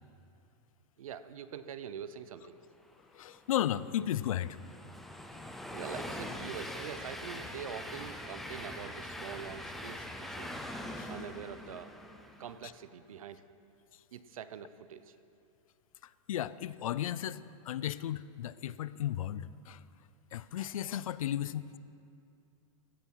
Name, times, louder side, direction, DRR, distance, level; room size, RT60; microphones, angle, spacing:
voice 1, 1.0-2.6 5.7-10.6 11.1-11.9 12.4-13.4 14.1-15.2, right 8 dB, 90° right, 12 dB, 0.7 m, -44 dB
voice 2, 3.1-4.6 11.0-11.1 16.3-19.8 20.3-21.8, left 11 dB, 85° left, 17 dB, 0.5 m, -34 dB
Train, 3.2-12.7, left 1 dB, ahead, 0.4 m, -43 dB
16.0 x 11.0 x 4.6 m, 2.6 s
supercardioid pair, 165°, 17 cm